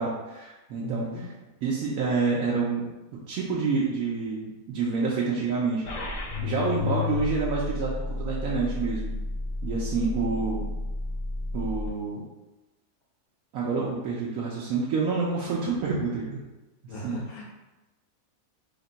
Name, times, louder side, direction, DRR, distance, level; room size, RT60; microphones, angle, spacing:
voice 1, 0.0-1.1 1.6-2.9 3.3-5.8 6.4-9.1 9.6-10.7 11.5-12.2 13.5-16.4 17.0-17.2, right 4 dB, 75° right, -5 dB, 1.0 m, -28 dB
voice 2, 0.8-1.4 6.7-7.1 10.3-10.5 16.9-17.4, left 1 dB, 80° left, -2 dB, 1.3 m, -38 dB
sound 1, 5.9-11.9, left 3 dB, 65° left, 0.4 m, -31 dB
3.5 x 2.2 x 3.8 m, 1.0 s
omnidirectional pair, 1.5 m